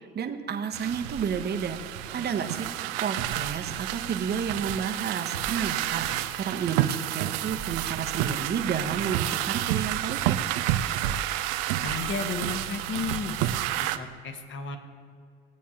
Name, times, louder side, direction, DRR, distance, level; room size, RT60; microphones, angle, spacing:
voice 1, 0.1-1.8 2.1-6.1 6.4-10.4, right 7 dB, 30° right, 6 dB, 1.0 m, -31 dB
sound 1, 0.7-14.0, right 13 dB, 65° right, 0.6 m, -30 dB
sound 2, 1.0-2.4 3.2-4.8 5.3-6.7 7.5-9.1 9.6-11.0 11.8-13.4, right 6 dB, 85° right, 0.9 m, -44 dB
voice 2, 11.8-13.6 14.0-14.8, left 4 dB, 40° left, 6 dB, 1.3 m, -33 dB
17.5 x 8.3 x 2.8 m, 2.2 s
hypercardioid pair, 65°, 31 cm